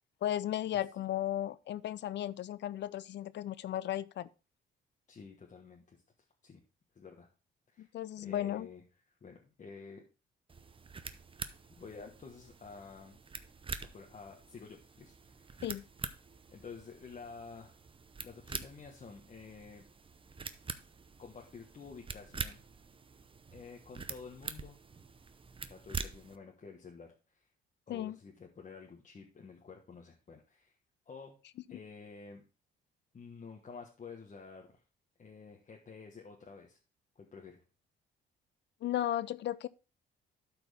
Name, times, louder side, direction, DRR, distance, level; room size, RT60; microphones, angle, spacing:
voice 1, 0.2-4.3 7.8-8.7 15.6-15.8 27.9-28.2 38.8-39.7, left 12 dB, 60° left, 0.5 m, -35 dB
voice 2, 5.1-6.0 6.4-6.6 6.9-7.3 7.7-7.9 8.2-8.8 9.2-10.0 11.8-13.2 13.8-15.6 16.5-17.8 18.2-19.8 21.2-22.6 23.5-24.8 25.7-27.5 27.9-30.8 31.1-31.4 31.7-32.4 33.1-34.8 35.2-36.8 37.1-37.6, left 5 dB, 40° left, 1.3 m, -50 dB
sound 1, 10.5-26.4, right 4 dB, 25° right, 0.7 m, -45 dB
12.5 x 4.5 x 3.4 m
cardioid pair, 90°, 20 cm